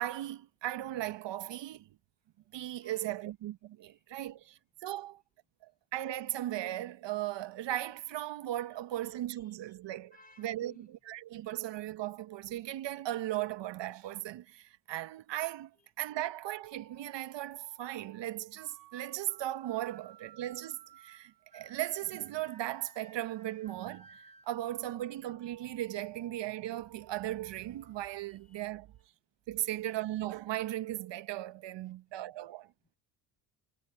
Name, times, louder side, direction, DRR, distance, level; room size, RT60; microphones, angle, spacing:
voice 1, 0.0-1.9 2.5-5.2 5.6-15.7 16.0-28.9 29.5-32.7, right 14 dB, 65° right, 1.2 m, -37 dB
voice 2, 2.8-3.2 3.9-4.0 9.0-9.6 10.1-10.9 15.8-15.9 20.0-20.1 21.4-21.6 28.3-28.9 29.6-29.7 31.6-32.2 32.8-33.0, left 3 dB, 20° left, 4.1 m, -63 dB
sound 1, 16.3-29.1, right 7 dB, 45° right, 2.0 m, -59 dB
supercardioid pair, 60°, 47 cm